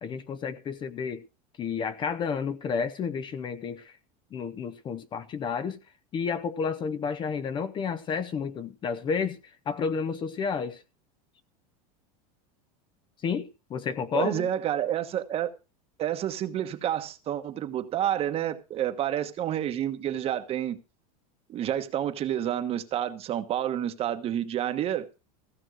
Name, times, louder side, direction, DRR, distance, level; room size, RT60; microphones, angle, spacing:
voice 1, 0.0-1.2 1.6-3.9 4.3-5.8 6.1-10.8 13.2-14.5, left 6 dB, 25° left, 0.7 m, -31 dB
voice 2, 14.1-15.5 16.0-20.8 21.5-25.1, right 11 dB, 30° right, 1.2 m, -29 dB
15.5 x 6.1 x 6.3 m
supercardioid pair, 150°, 19 cm